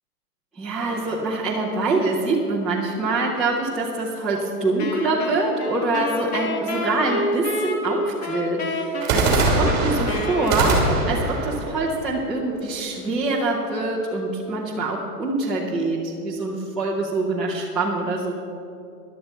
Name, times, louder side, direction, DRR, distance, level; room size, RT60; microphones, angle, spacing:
voice 1, 0.5-18.3, right 2 dB, ahead, -10 dB, 0.6 m, -25 dB
sound 1, 0.8-2.2 9.0-13.0, right 2 dB, 20° right, 2.8 m, -24 dB
Wind instrument woodwind instrument, 4.8-11.4, left 1 dB, 40° left, 1.5 m, -29 dB
15.0 x 11.5 x 4.4 m, 2.7 s
hypercardioid pair, 155°, 48 cm